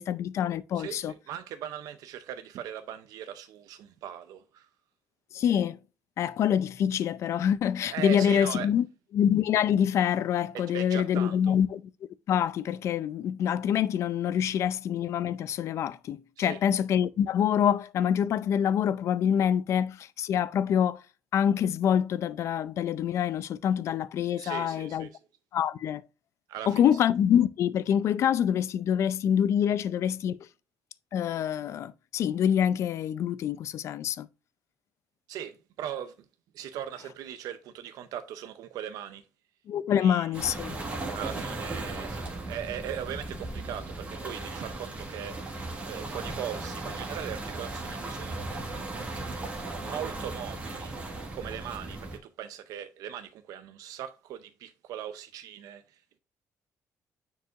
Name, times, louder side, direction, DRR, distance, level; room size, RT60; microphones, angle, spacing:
voice 1, 0.0-1.1 5.3-5.8 6.2-8.9 9.1-11.8 12.3-21.0 21.3-25.1 25.5-26.0 26.7-30.4 31.1-34.3 39.7-40.8, left 9 dB, 50° left, 0.5 m, -26 dB
voice 2, 0.7-4.7 7.9-8.7 10.5-11.5 16.4-16.6 24.4-25.1 26.5-26.8 35.3-36.1 36.5-39.2 39.9-40.3 41.1-45.6 45.8-49.2 49.8-51.0 51.3-56.2, right 10 dB, 80° right, 0.6 m, -39 dB
sound 1, 40.3-52.2, right 2 dB, 25° right, 1.6 m, -37 dB
9.2 x 4.7 x 2.5 m
cardioid pair, 175°, 6 cm